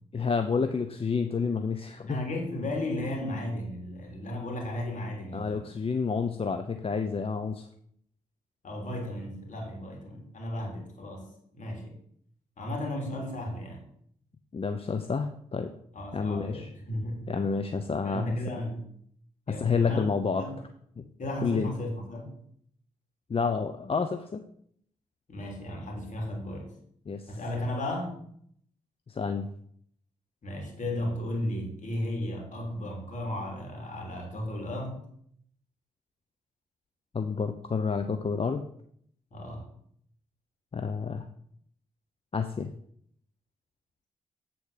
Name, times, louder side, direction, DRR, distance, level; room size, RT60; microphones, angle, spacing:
voice 1, 0.1-2.2 5.3-7.7 14.5-15.7 16.1-16.7 17.3-18.6 19.5-20.4 21.0-21.1 21.4-21.7 23.3-24.4 27.1-27.3 29.1-29.5 37.1-38.6 40.7-41.3 42.3-42.7, left 5 dB, 40° left, 8 dB, 0.7 m, -29 dB
voice 2, 2.1-5.6 8.6-11.3 11.5-11.9 12.6-13.8 15.9-17.3 18.0-18.8 19.5-20.0 20.3-20.6 21.2-22.3 25.3-26.7 27.3-28.2 30.4-35.0 39.3-39.6, left 1 dB, 55° left, 1 dB, 3.0 m, -34 dB
8.2 x 4.4 x 6.5 m, 0.66 s
hypercardioid pair, 40°, 15 cm